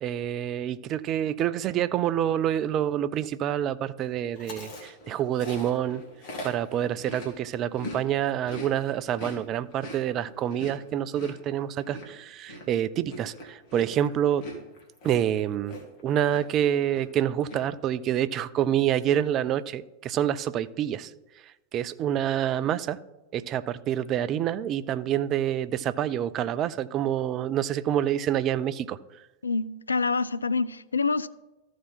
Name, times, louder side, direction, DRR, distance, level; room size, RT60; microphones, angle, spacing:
voice 1, 0.0-6.0 6.4-14.4 15.0-15.8 16.0-21.1 21.4-23.0 23.3-29.0, right 10 dB, 35° right, 0.4 m, -27 dB
Chewing mastication, 4.4-8.0 8.3-16.0 16.3-16.6 16.9-17.6, equal, 45° left, 2.2 m, -42 dB
voice 2, 29.4-31.3, left 4 dB, 80° left, 0.3 m, -26 dB
14.0 x 4.7 x 4.1 m
figure-of-eight pair, 90°, 0 cm